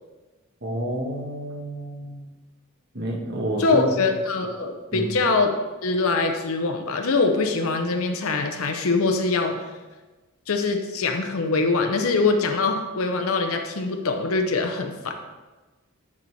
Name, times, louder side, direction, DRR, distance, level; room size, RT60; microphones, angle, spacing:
voice 1, 0.6-2.2 2.9-3.8 4.9-5.1, right 1 dB, 50° right, 0 dB, 1.5 m, -29 dB
voice 2, 3.6-5.6 5.8-9.6 10.5-15.1, left 3 dB, 70° left, 5 dB, 0.7 m, -23 dB
9.7 x 4.2 x 4.6 m, 1.2 s
head